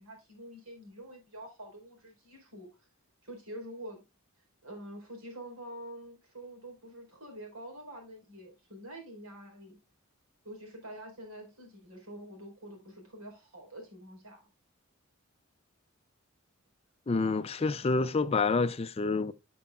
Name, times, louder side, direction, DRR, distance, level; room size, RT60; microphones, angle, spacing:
voice 1, 0.0-2.7 3.2-4.0 4.6-9.8 10.4-14.5, right 1 dB, 80° right, 4.4 m, -46 dB
voice 2, 17.1-19.3, left 3 dB, 30° left, 0.4 m, -28 dB
12.5 x 6.1 x 2.4 m
head